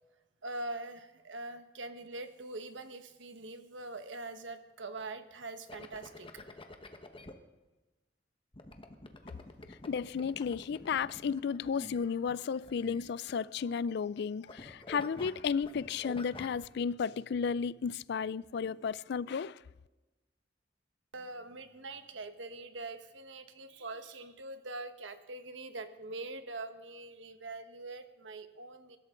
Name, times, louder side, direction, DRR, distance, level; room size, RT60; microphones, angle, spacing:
voice 1, 0.4-6.4 21.1-29.0, right 2 dB, 85° right, 1.3 m, -43 dB
sound 1, 5.7-7.3 8.5-13.6 13.9-14.2 14.5-16.6, left 2 dB, 30° left, 1.2 m, -48 dB
voice 2, 9.9-19.6, left 6 dB, 65° left, 0.4 m, -33 dB
23.0 x 13.0 x 3.8 m
head